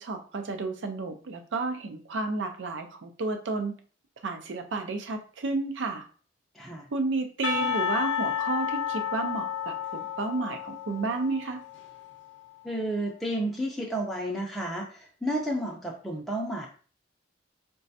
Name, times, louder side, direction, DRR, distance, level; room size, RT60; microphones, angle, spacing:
voice 1, 0.0-3.8 4.2-6.0 6.9-11.6, right 3 dB, 75° right, 5 dB, 0.5 m, -31 dB
voice 2, 6.5-6.9 12.6-16.7, right 1 dB, ahead, -3 dB, 0.4 m, -31 dB
Percussion, 7.4-12.3, left 8 dB, 65° left, 0.5 m, -31 dB
4.0 x 2.2 x 2.6 m, 0.40 s
head